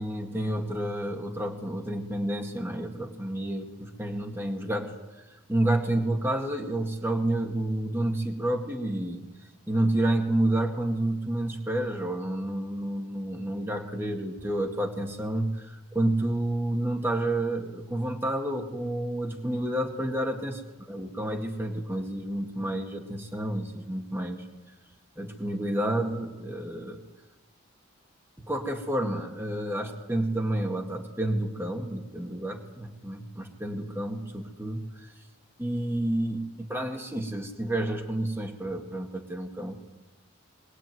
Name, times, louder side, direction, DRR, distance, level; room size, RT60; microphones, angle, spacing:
voice 1, 0.0-9.2 9.7-20.6 20.9-24.4 25.2-27.0 28.4-35.1 35.6-39.7, right 1 dB, 10° right, 3 dB, 2.1 m, -30 dB
22.0 x 18.5 x 9.4 m, 1.1 s
head